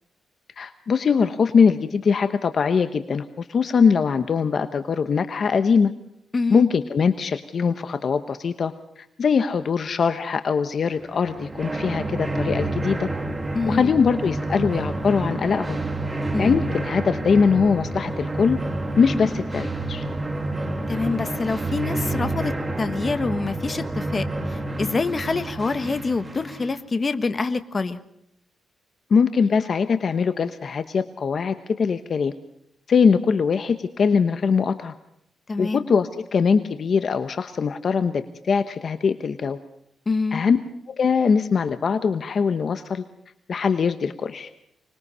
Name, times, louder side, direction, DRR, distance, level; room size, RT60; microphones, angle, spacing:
voice 1, 0.6-5.9 6.5-13.1 13.7-15.8 16.4-18.6 19.0-20.0 29.1-32.3 32.9-34.9 35.6-39.6 40.3-40.6 40.9-43.0 43.5-44.5, left 5 dB, 45° left, 10 dB, 1.0 m, -22 dB
voice 2, 6.3-6.7 13.5-13.9 16.3-16.6 20.9-28.0 35.5-35.8 40.1-40.4, left 4 dB, 25° left, 10 dB, 1.3 m, -26 dB
sound 1, 11.0-26.8, right 2 dB, 15° right, 1.9 m, -29 dB
25.0 x 21.0 x 5.5 m, 0.75 s
wide cardioid pair, 150°, 0 cm